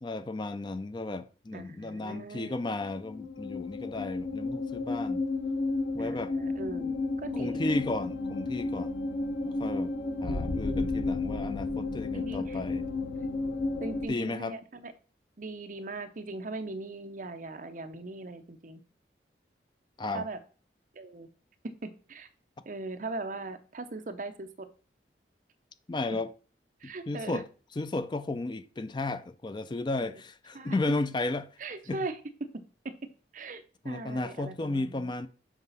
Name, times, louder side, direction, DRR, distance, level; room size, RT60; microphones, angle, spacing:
voice 1, 0.0-5.2 5.9-6.3 7.3-8.9 9.4-9.9 10.2-12.8 14.1-14.5 20.0-20.3 25.9-26.3 26.8-27.4 27.8-31.5 31.9-32.1 33.8-35.3, left 2 dB, 25° left, 0.4 m, -34 dB
voice 2, 1.5-2.7 6.0-7.7 10.2-10.5 12.1-12.7 13.2-13.4 13.8-14.9 15.4-18.8 20.1-20.4 20.9-21.3 21.8-22.3 22.7-24.7 26.8-27.4 30.0-30.1 30.5-30.7 31.6-32.2 32.5-32.9 33.3-35.1, right 3 dB, 45° right, 0.7 m, -40 dB
sound 1, 2.8-14.1, left 3 dB, 85° left, 0.8 m, -32 dB
7.3 x 5.0 x 4.0 m
head